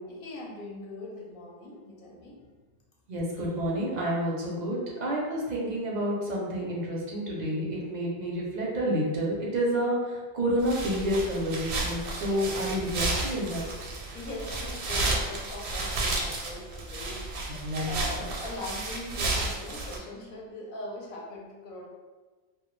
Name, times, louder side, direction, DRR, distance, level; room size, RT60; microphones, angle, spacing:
voice 1, 0.1-2.5 12.2-12.9 14.1-21.9, left 2 dB, 60° left, -2 dB, 0.7 m, -41 dB
voice 2, 3.1-13.7 17.5-17.9 18.2-18.3, equal, 55° right, -3 dB, 0.5 m, -29 dB
sound 1, 10.6-20.0, right 2 dB, 85° right, 0.8 m, -32 dB
2.2 x 2.1 x 3.0 m, 1.3 s
omnidirectional pair, 1.1 m